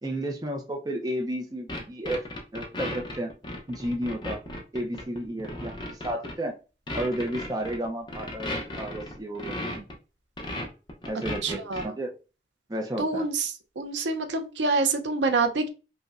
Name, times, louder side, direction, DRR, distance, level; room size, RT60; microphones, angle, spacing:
voice 1, 0.0-3.3 3.7-4.4 4.7-6.5 6.9-9.8 11.0-12.1 12.7-13.3, right 1 dB, 20° right, 3 dB, 0.5 m, -32 dB
sound 1, 1.7-6.3 6.9-9.9 10.4-11.9, left 1 dB, 25° left, 0.6 m, -35 dB
voice 2, 11.4-11.8 13.0-13.5 13.8-15.7, right 3 dB, 85° right, 7 dB, 0.5 m, -26 dB
5.0 x 2.1 x 2.4 m, 0.32 s
head